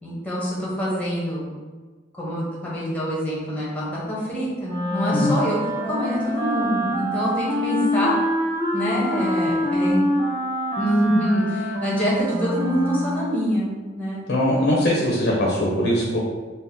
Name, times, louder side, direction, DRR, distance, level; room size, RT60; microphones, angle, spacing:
voice 1, 0.0-1.5 2.1-5.6 5.8-8.2 8.7-10.0 10.8-14.2, equal, 10° left, -7 dB, 1.0 m, -25 dB
Wind instrument woodwind instrument, 4.6-13.3, equal, 35° right, 1.1 m, -25 dB
voice 2, 14.3-16.2, left 1 dB, 60° left, -4 dB, 0.7 m, -21 dB
4.1 x 2.0 x 3.6 m, 1.4 s
head